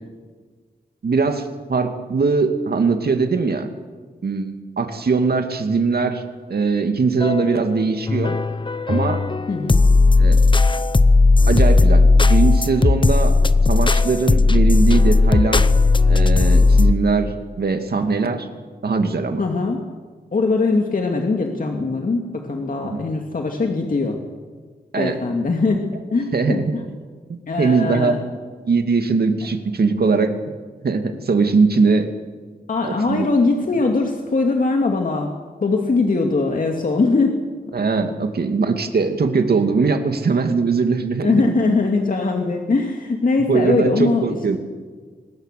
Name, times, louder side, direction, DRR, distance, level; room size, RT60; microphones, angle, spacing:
voice 1, 1.0-3.7 4.2-6.2 6.5-8.4 8.9-9.2 10.2-10.4 11.5-13.4 13.7-15.6 16.1-18.5 18.8-19.4 22.8-23.0 24.9-25.2 26.3-26.7 27.3-28.2 28.6-30.3 30.8-32.1 32.8-33.3 37.7-41.4 43.5-44.6, right 4 dB, 70° right, 6 dB, 2.5 m, -20 dB
sound 1, 7.2-7.7 8.1-16.9, left 3 dB, 30° left, 0.9 m, -15 dB
voice 2, 9.5-9.8 19.4-19.8 20.3-24.2 25.0-25.8 26.1-26.8 27.5-28.2 32.7-35.3 35.6-37.4 38.0-38.1 41.2-44.3, left 3 dB, 55° left, 2 dB, 2.4 m, -21 dB
25.0 x 20.0 x 6.8 m, 1.5 s
wide cardioid pair, 85°, 17 cm